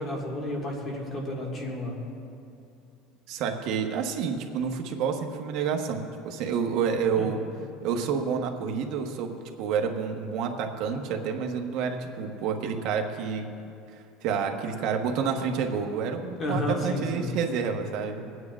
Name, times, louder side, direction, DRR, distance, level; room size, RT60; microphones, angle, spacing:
voice 1, 0.0-2.0 7.2-7.3 16.4-17.3, left 1 dB, 25° left, -1 dB, 1.8 m, -31 dB
voice 2, 3.3-7.4 7.8-9.3 9.6-13.5 14.2-18.3, right 6 dB, 55° right, 4 dB, 1.0 m, -29 dB
28.0 x 9.4 x 2.4 m, 2.6 s
cardioid pair, 165°, 0 cm